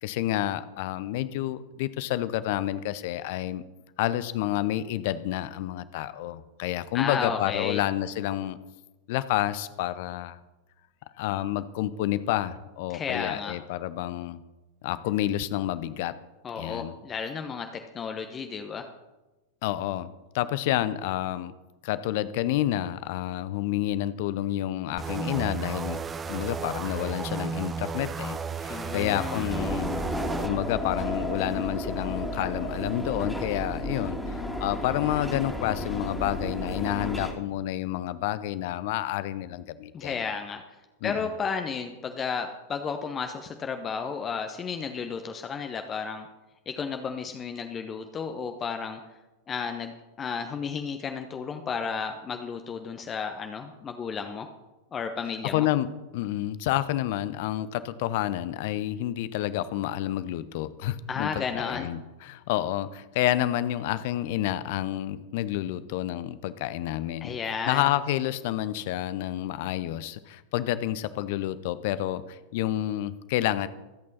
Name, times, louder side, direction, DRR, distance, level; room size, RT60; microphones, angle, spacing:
voice 1, 0.0-3.6 4.0-8.6 9.1-10.4 11.2-14.4 14.8-16.1 16.6-16.9 19.6-20.1 20.3-21.5 21.8-26.0 26.3-30.1 30.4-40.2 41.0-41.3 55.5-55.9 56.1-73.7, left 13 dB, 50° left, 15 dB, 0.7 m, -29 dB
voice 2, 6.9-7.8 12.9-13.5 16.4-18.9 28.7-29.5 39.9-40.8 41.0-46.3 46.7-49.0 49.5-54.5 54.9-55.7 61.1-61.9 67.2-67.9, left 6 dB, 25° left, 6 dB, 1.0 m, -33 dB
sound 1, 25.0-30.5, right 5 dB, 20° right, 0.8 m, -33 dB
sound 2, 29.5-37.3, left 1 dB, 5° left, 2.3 m, -32 dB
24.0 x 8.6 x 4.2 m, 1.1 s
figure-of-eight pair, 90°, 0 cm